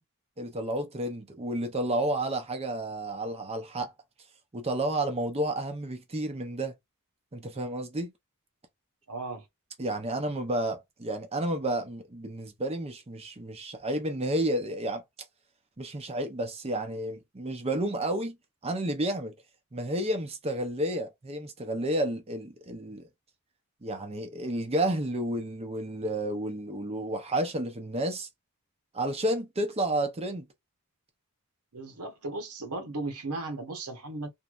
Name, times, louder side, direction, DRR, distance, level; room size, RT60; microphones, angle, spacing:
voice 1, 0.4-3.9 4.5-6.7 7.3-8.1 9.8-15.0 15.8-18.4 18.6-19.3 19.7-23.1 23.8-28.3 28.9-30.5, right 1 dB, 25° right, 0.6 m, -31 dB
voice 2, 9.1-9.4 31.7-34.3, right 2 dB, 80° right, 0.9 m, -36 dB
3.1 x 2.6 x 2.4 m
head